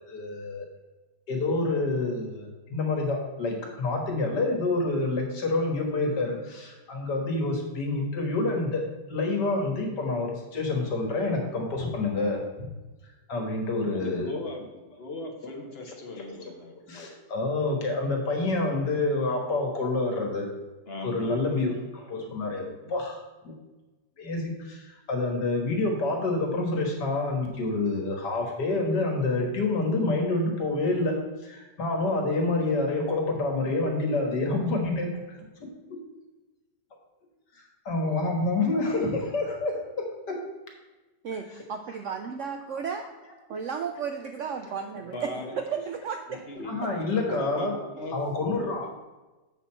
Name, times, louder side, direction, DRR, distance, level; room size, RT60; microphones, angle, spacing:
voice 1, 0.1-0.7 1.3-8.8 9.1-12.7 13.3-14.3 15.9-16.0 16.9-20.5 21.0-23.5 24.2-35.4 37.9-40.4 41.5-41.6 41.9-42.0 42.2-42.3 43.3-43.4 44.6-44.7 46.3-46.4 46.6-48.9, left 2 dB, 75° left, 1 dB, 2.1 m, -28 dB
voice 2, 13.9-14.6 14.9-16.8 20.9-21.7 22.8-23.0 45.1-45.5 46.5-47.7 48.0-48.2, left 2 dB, 40° left, 2 dB, 1.2 m, -38 dB
voice 3, 41.2-43.0 43.5-45.3 45.6-46.7, right 6 dB, 70° right, 6 dB, 0.7 m, -34 dB
8.1 x 6.6 x 4.3 m, 1.1 s
omnidirectional pair, 1.8 m